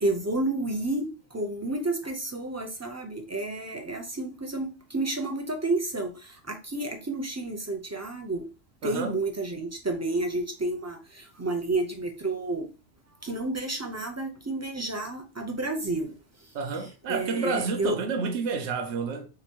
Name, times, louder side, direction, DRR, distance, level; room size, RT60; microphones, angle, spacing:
voice 1, 0.0-8.5 8.8-12.7 13.2-16.1 17.1-17.9, right 2 dB, 20° right, 0.5 m, -30 dB
voice 2, 8.8-9.2 16.5-19.3, right 4 dB, 65° right, 1.0 m, -30 dB
3.7 x 3.0 x 4.4 m
omnidirectional pair, 1.3 m